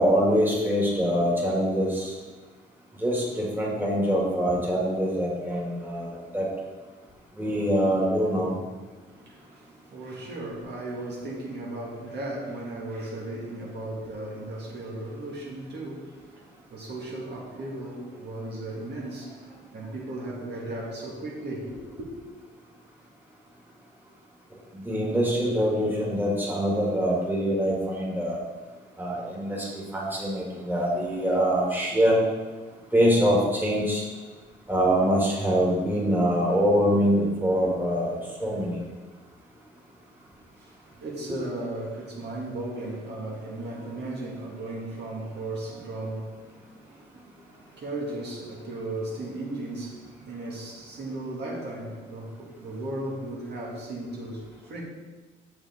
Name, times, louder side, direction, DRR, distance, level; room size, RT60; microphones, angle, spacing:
voice 1, 0.0-2.1 3.0-6.5 7.4-8.5 24.8-28.4 29.0-32.2 32.9-34.0 34.7-38.8, equal, 10° right, 2.2 m, -24 dB
voice 2, 9.0-22.1 40.4-54.8, right 2 dB, 60° right, 2.1 m, -36 dB
7.2 x 6.9 x 3.7 m
cardioid pair, 90°, 20 cm